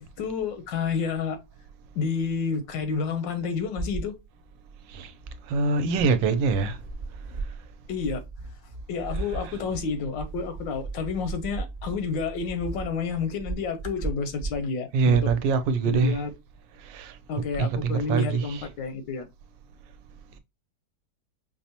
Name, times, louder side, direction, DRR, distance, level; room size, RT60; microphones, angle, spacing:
voice 1, 0.0-1.4 1.9-4.1 7.9-8.2 8.9-15.3 15.9-16.3 17.3-19.3, left 5 dB, 85° left, 1.4 m, -30 dB
sound 1, 3.8-4.1 5.2-5.6 6.0-14.6 15.1-15.4, right 3 dB, 45° right, 0.5 m, -36 dB
voice 2, 5.5-6.8 14.9-16.1 16.8-17.2 17.6-18.4, right 4 dB, 85° right, 1.3 m, -24 dB
5.4 x 2.0 x 2.8 m
omnidirectional pair, 1.9 m